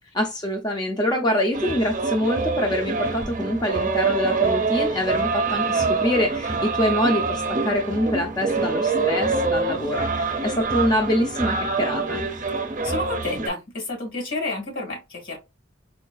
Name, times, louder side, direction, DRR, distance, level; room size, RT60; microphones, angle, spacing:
voice 1, 0.1-12.2, left 1 dB, 20° left, 0.4 m, -25 dB
sound 1, 1.5-13.5, right 4 dB, 40° right, 0.6 m, -25 dB
voice 2, 12.8-15.4, left 2 dB, 80° left, 2.0 m, -30 dB
4.4 x 2.3 x 2.3 m
head